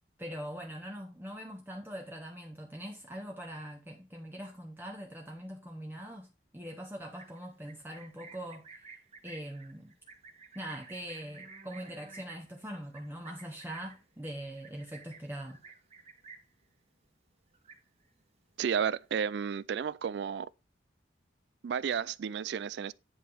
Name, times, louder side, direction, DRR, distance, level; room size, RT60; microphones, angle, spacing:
voice 1, 0.2-8.8 9.2-9.9 10.5-15.6, equal, 10° right, 0.9 m, -42 dB
Livestock farm animals working animals, 7.0-16.6 17.0-17.3 17.5-18.2 18.5-19.2, right 4 dB, 30° right, 1.3 m, -53 dB
voice 2, 18.6-20.5 21.6-22.9, right 7 dB, 60° right, 0.3 m, -32 dB
10.0 x 3.5 x 5.4 m
head